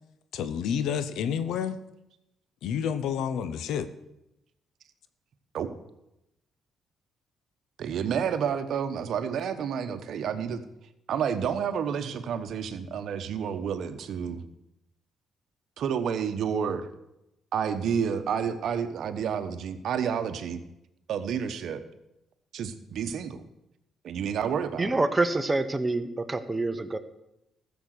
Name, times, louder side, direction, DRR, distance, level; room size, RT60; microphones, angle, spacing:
voice 1, 0.3-1.8 2.6-3.9, left 8 dB, 80° left, 12 dB, 0.7 m, -29 dB
voice 2, 7.8-10.6 11.1-14.4 15.8-16.9 17.5-20.6 21.1-21.8 22.5-23.4 24.0-25.0, right 7 dB, 70° right, 9 dB, 1.1 m, -30 dB
voice 3, 24.8-27.0, right 2 dB, 20° right, 10 dB, 1.0 m, -26 dB
14.0 x 7.1 x 6.5 m, 0.88 s
cardioid pair, 90°, 0 cm